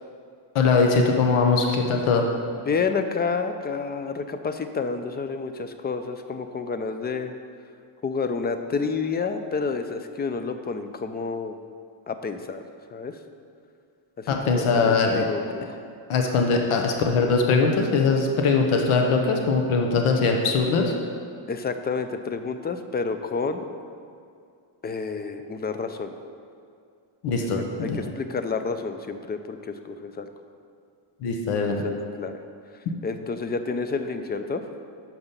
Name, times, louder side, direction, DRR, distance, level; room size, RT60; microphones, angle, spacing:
voice 1, 0.5-2.3 14.3-15.2 16.1-21.0 27.2-28.1 31.2-31.8, left 4 dB, 85° left, 3 dB, 0.9 m, -21 dB
voice 2, 2.7-7.3 8.0-11.6 12.1-12.6 12.9-13.2 14.2-15.6 21.5-23.6 24.8-26.1 27.6-30.3 31.7-32.3 33.0-34.6, left 4 dB, 20° left, 8 dB, 0.4 m, -29 dB
6.0 x 5.5 x 6.6 m, 2.3 s
cardioid pair, 115°, 49 cm